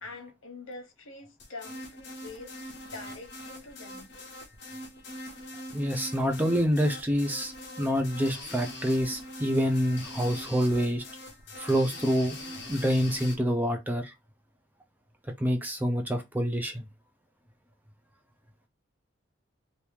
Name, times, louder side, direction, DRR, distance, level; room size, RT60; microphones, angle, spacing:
voice 1, 0.0-2.6 2.8-4.1, left 3 dB, 80° left, 1.1 m, -45 dB
sound 1, 1.4-13.4, left 1 dB, 55° left, 0.9 m, -42 dB
voice 2, 5.7-7.5 7.8-11.0 11.6-12.4 12.7-14.1 15.4-16.9, equal, 10° right, 0.4 m, -27 dB
2.9 x 2.6 x 3.5 m
head